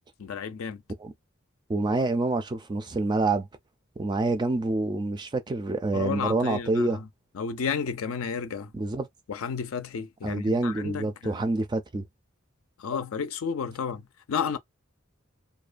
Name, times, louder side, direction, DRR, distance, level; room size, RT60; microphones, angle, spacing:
voice 1, 0.2-0.8 5.9-7.1 7.3-8.7 9.3-11.4 12.8-14.6, left 6 dB, 75° left, 0.4 m, -32 dB
voice 2, 1.7-3.5 4.0-7.0 8.7-9.1 10.2-12.0, right 2 dB, 20° right, 0.3 m, -27 dB
2.3 x 2.2 x 2.4 m
head